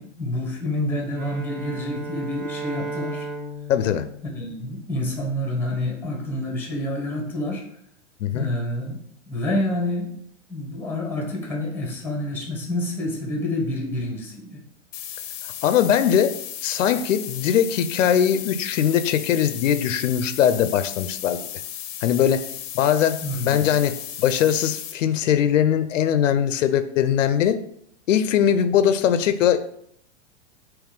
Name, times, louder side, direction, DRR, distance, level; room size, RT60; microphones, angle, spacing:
voice 1, 0.0-3.3 4.2-7.6 8.3-9.0 9.3-10.1 10.5-14.6 23.2-23.7, left 1 dB, 5° left, 1 dB, 0.8 m, -28 dB
Bowed string instrument, 1.1-5.3, right 2 dB, 45° right, 1.0 m, -35 dB
voice 2, 3.7-4.0 8.2-8.5 15.6-16.3 16.6-21.4 22.0-22.4 22.7-23.2 23.4-23.9 24.2-27.6 28.1-29.6, left 9 dB, 85° left, 11 dB, 0.6 m, -20 dB
sound 1, 14.9-24.9, left 10 dB, 45° left, 0.6 m, -35 dB
3.6 x 3.1 x 4.8 m, 0.69 s
hypercardioid pair, 140°, 37 cm